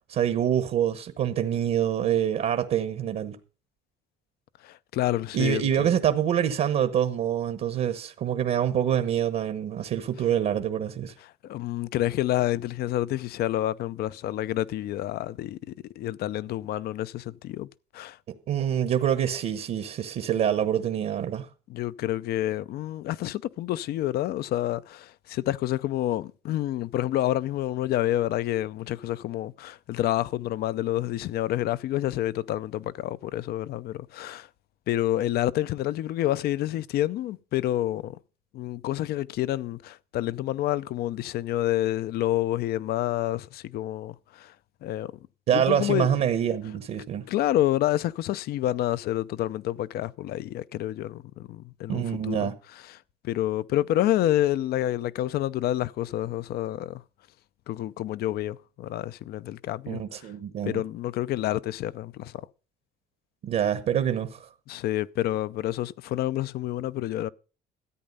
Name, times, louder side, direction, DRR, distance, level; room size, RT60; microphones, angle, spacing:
voice 1, 0.1-3.4 5.3-11.1 18.5-21.5 45.5-47.3 51.9-52.5 59.9-60.8 63.4-64.5, right 9 dB, 60° right, 1.1 m, -26 dB
voice 2, 4.6-5.9 11.4-15.6 16.0-17.7 17.9-18.2 21.7-34.5 34.9-38.2 38.5-44.5 44.8-45.1 45.5-46.1 47.3-52.5 53.2-57.0 57.7-60.3 60.7-62.5 64.7-67.3, left 14 dB, 70° left, 0.6 m, -28 dB
14.0 x 8.8 x 5.4 m
cardioid pair, 110°, 17 cm